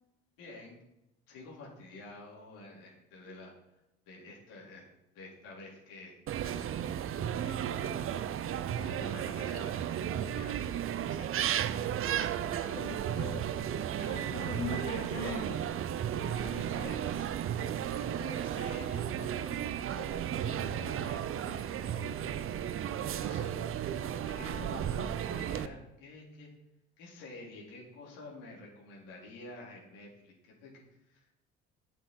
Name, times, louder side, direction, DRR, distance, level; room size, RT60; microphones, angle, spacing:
voice 1, 0.4-0.8 1.3-3.5 4.1-4.9 5.1-6.2 6.9-7.0 7.4-8.3 8.5-9.7 10.3-10.6 11.0-11.3 12.0-12.8 13.9-15.5 16.1-17.3 17.6-22.1 22.8-23.5 23.8-26.5 27.0-30.3 30.6-31.3, left 2 dB, 70° left, -3 dB, 3.2 m, -49 dB
sound 1, 6.3-25.7, right 10 dB, 40° right, 0.6 m, -34 dB
voice 2, 12.7-15.6 16.5-16.9, left 5 dB, 30° left, -1 dB, 2.3 m, -42 dB
8.6 x 6.9 x 4.5 m, 0.93 s
hypercardioid pair, 60°, 33 cm